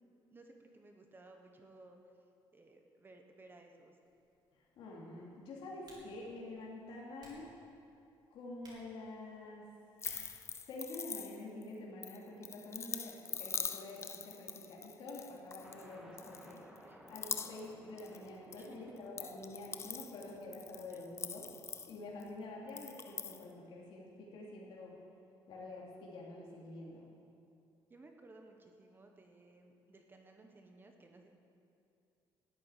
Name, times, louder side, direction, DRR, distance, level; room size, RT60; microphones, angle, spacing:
voice 1, 0.3-2.0 2.5-4.0 16.8-17.0 18.6-18.8 20.9-21.0 27.9-31.3, right 2 dB, 25° right, 4 dB, 1.3 m, -58 dB
Typing, 4.0-11.5, right 2 dB, 50° right, 4.2 m, -64 dB
voice 2, 4.6-7.5 8.3-9.6 10.7-16.6 17.1-21.5 21.9-25.0 25.5-27.1, left 2 dB, 75° left, -4 dB, 3.0 m, -47 dB
sound 1, 10.0-11.6 12.0-15.9 16.2-16.8 17.1-18.7 19.0-22.3 22.7-23.4, left 6 dB, 30° left, 0.6 m, -43 dB
sound 2, 15.6-23.2, equal, 5° right, 1.8 m, -59 dB
13.5 x 9.0 x 9.3 m, 2.6 s
cardioid pair, 135°, 9 cm